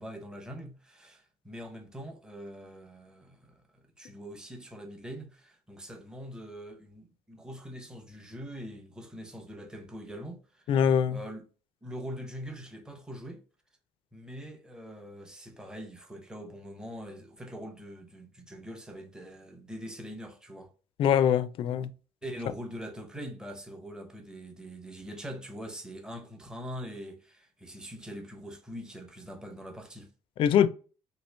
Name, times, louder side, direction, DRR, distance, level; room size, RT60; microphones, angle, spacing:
voice 1, 0.0-10.7 11.1-11.4 11.8-13.4 14.1-20.7 22.2-30.1, equal, 5° right, 0.7 m, -43 dB
voice 2, 10.7-11.2 21.0-21.9 30.4-30.7, left 9 dB, 50° left, 0.3 m, -23 dB
3.0 x 2.7 x 3.2 m
cardioid pair, 130°, 11 cm